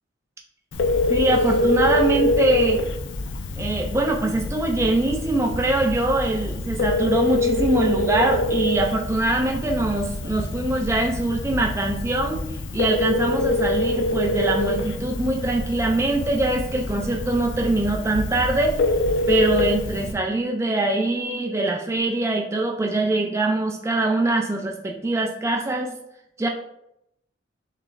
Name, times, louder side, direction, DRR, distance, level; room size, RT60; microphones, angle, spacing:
Telephone, 0.7-20.1, left 2 dB, 70° left, 0.5 m, -25 dB
voice 1, 1.1-2.8 3.6-12.5 12.7-18.8 19.3-26.0 26.4-26.5, right 2 dB, 15° right, 1 dB, 0.3 m, -23 dB
6.0 x 3.2 x 2.3 m, 0.80 s
head